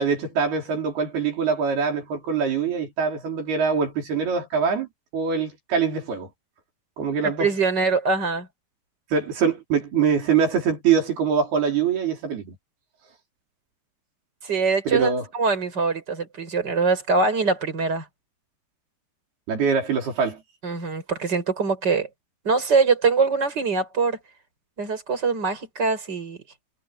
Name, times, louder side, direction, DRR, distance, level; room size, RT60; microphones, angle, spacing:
voice 1, 0.0-4.9 5.1-6.3 7.0-7.5 9.1-12.5 14.9-15.2 19.5-20.4, right 6 dB, 75° right, 6.5 m, -23 dB
voice 2, 7.4-8.5 14.4-18.0 20.6-22.1 22.4-24.2 24.8-26.4, right 4 dB, 25° right, 6.6 m, -23 dB
omnidirectional pair, 4.5 m